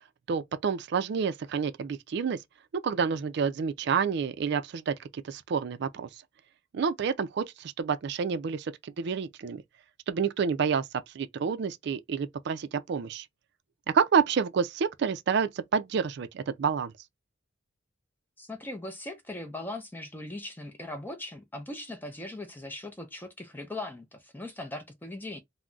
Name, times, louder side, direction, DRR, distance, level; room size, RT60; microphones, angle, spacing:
voice 1, 0.3-2.4 2.7-6.1 6.7-9.6 10.1-10.8 11.1-13.3 13.9-16.9, right 6 dB, 60° right, 0.4 m, -29 dB
voice 2, 18.4-25.4, left 2 dB, 10° left, 0.5 m, -39 dB
2.3 x 2.1 x 3.7 m
head